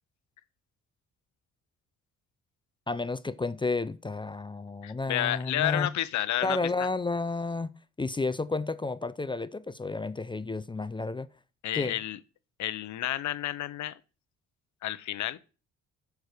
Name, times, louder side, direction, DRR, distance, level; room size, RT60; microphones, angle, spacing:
voice 1, 2.9-5.9 6.4-7.7 8.0-11.3 11.7-12.0, left 3 dB, 15° left, 0.5 m, -31 dB
voice 2, 4.8-6.9 11.6-12.2 12.6-14.0 14.8-15.4, left 13 dB, 70° left, 0.8 m, -31 dB
10.5 x 4.7 x 6.6 m
cardioid pair, 90°, 30 cm